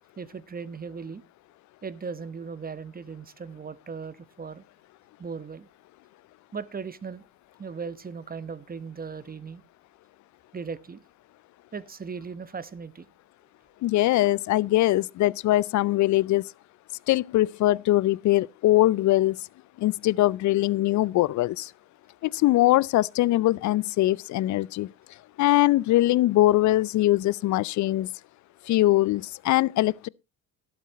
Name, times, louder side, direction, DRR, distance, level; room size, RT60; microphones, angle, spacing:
voice 1, 0.2-1.2 1.8-4.6 5.2-5.7 6.5-7.2 7.6-9.6 10.5-11.0 11.7-13.1, right 5 dB, 20° right, 1.0 m, -37 dB
voice 2, 13.8-16.4 17.1-19.4 19.8-21.7 22.2-24.9 25.4-28.1 28.7-30.1, left 16 dB, 45° left, 0.5 m, -22 dB
13.0 x 12.0 x 3.0 m
hypercardioid pair, 65°, 40 cm